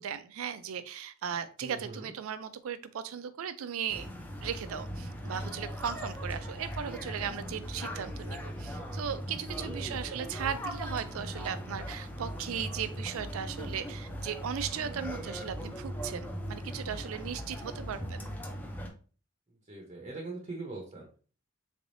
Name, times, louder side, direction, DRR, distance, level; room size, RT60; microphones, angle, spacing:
voice 1, 0.0-4.1 4.4-18.3, right 8 dB, 80° right, 13 dB, 0.4 m, -37 dB
voice 2, 1.6-2.1 9.8-10.2 19.7-21.2, right 2 dB, 30° right, 0 dB, 0.7 m, -42 dB
sound 1, 3.9-18.9, equal, 10° left, 0.5 m, -39 dB
3.5 x 3.3 x 2.6 m, 0.40 s
head